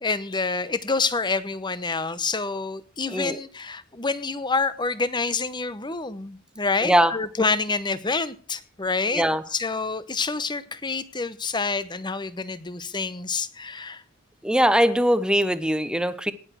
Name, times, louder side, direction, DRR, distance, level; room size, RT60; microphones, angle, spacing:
voice 1, 0.0-9.2 9.5-14.0, left 4 dB, 20° left, 0.9 m, -27 dB
voice 2, 6.8-7.1 9.1-9.4 14.4-16.3, equal, 5° right, 0.8 m, -21 dB
18.0 x 7.1 x 6.2 m
head